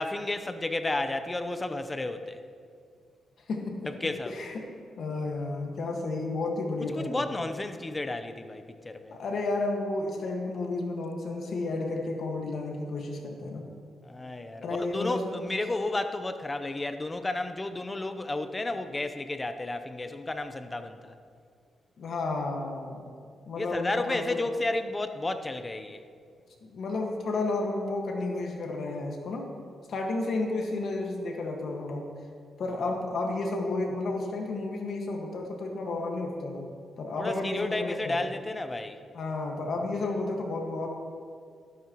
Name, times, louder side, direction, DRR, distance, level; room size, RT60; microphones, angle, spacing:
voice 1, 0.0-2.4 4.0-4.3 6.9-9.2 14.0-21.1 23.6-26.0 37.2-39.0, left 2 dB, 25° left, 9 dB, 0.8 m, -32 dB
voice 2, 3.5-4.7 5.0-7.4 9.1-13.7 14.6-15.3 22.0-23.1 23.5-24.3 26.6-29.5 29.9-32.1 32.6-36.7 37.0-38.2 39.1-40.9, left 2 dB, 65° left, 1 dB, 1.7 m, -32 dB
13.0 x 12.0 x 3.1 m, 2.2 s
cardioid pair, 80°, 0 cm